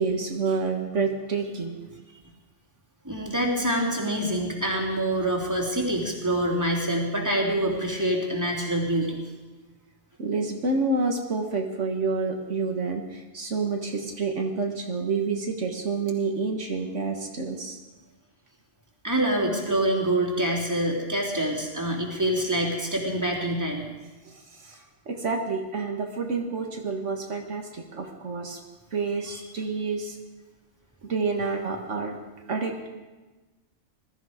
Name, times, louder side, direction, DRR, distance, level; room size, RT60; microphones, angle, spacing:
voice 1, 0.0-1.8 10.2-17.8 24.3-24.4 24.6-24.8 25.1-28.6 28.9-30.2 31.0-32.2 32.5-32.9, right 4 dB, 75° right, 2 dB, 1.8 m, -28 dB
voice 2, 3.0-9.2 19.0-23.8 29.3-29.4, right 1 dB, 15° right, -1 dB, 3.0 m, -26 dB
21.0 x 13.5 x 5.0 m, 1.2 s
omnidirectional pair, 1.3 m